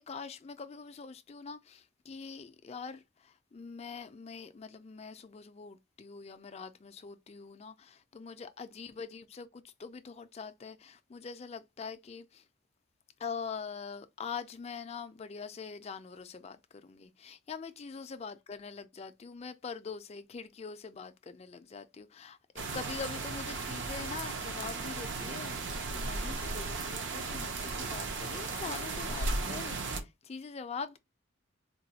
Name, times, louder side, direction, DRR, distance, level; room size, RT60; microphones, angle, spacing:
voice 1, 0.0-12.4 13.2-25.6 25.9-31.0, left 5 dB, 30° left, 0.3 m, -43 dB
sound 1, 22.6-30.0, right 3 dB, 60° right, 0.5 m, -36 dB
4.0 x 2.2 x 2.7 m
head